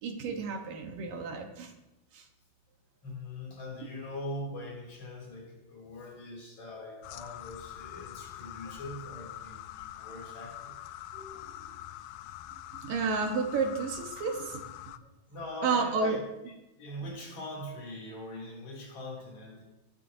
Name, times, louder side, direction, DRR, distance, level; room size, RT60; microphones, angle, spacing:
voice 1, 0.0-1.7 2.1-2.2 11.1-11.5 12.7-14.7 15.6-16.2, right 4 dB, 70° right, 3 dB, 2.9 m, -31 dB
voice 2, 3.0-10.8 15.3-16.5 16.8-19.6, left 1 dB, 50° left, -2 dB, 4.3 m, -42 dB
sound 1, 7.0-15.0, left 13 dB, 85° left, 2.3 m, -44 dB
18.5 x 12.5 x 2.8 m, 0.96 s
omnidirectional pair, 4.2 m